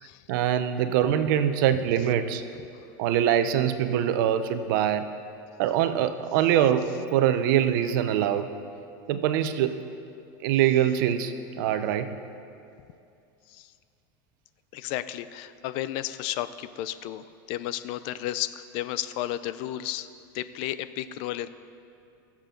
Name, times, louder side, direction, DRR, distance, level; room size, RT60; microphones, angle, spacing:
voice 1, 0.3-2.4 3.0-5.1 5.6-8.5 9.1-9.8 10.4-12.1, right 10 dB, 65° right, 10 dB, 0.8 m, -24 dB
voice 2, 14.7-20.1 20.3-21.5, left 13 dB, 55° left, 14 dB, 0.5 m, -33 dB
21.0 x 7.4 x 3.9 m, 2.5 s
supercardioid pair, 130°, 11 cm